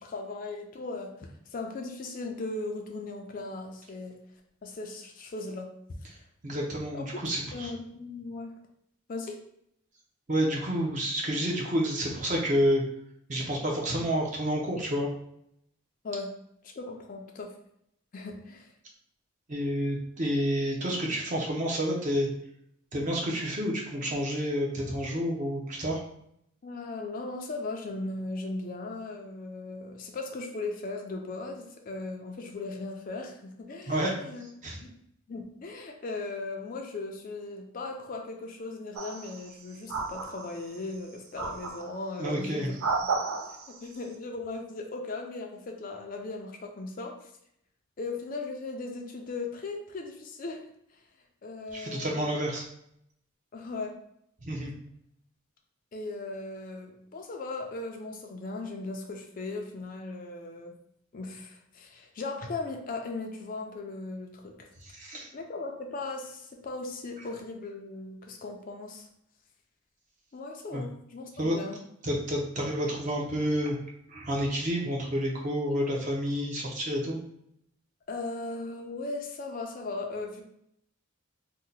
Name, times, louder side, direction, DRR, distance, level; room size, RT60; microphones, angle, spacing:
voice 1, 0.0-4.2 4.6-5.7 6.0-6.1 6.9-7.2 7.5-8.5 9.1-9.4 16.0-16.3 16.6-17.6 18.1-18.7 26.6-34.5 34.8-35.0 35.3-42.8 43.7-47.3 48.0-50.7 51.4-52.4 53.5-54.0 55.9-60.8 61.1-64.7 65.3-69.1 70.3-71.8 78.1-80.4, left 3 dB, 40° left, 2 dB, 0.4 m, -38 dB
voice 2, 6.4-7.7 10.3-12.8 13.3-15.1 19.5-22.3 22.9-26.0 33.9-34.1 34.6-34.8 42.2-42.7 51.7-52.6 54.4-54.7 64.8-65.3 70.7-70.8 71.4-71.6 72.0-73.8 74.1-77.2, equal, 35° right, -1 dB, 0.6 m, -29 dB
sound 1, 39.0-39.5 39.9-40.8 41.4-42.0 42.6-43.8, right 4 dB, 85° right, 0.4 m, -32 dB
2.7 x 2.1 x 3.9 m, 0.73 s
head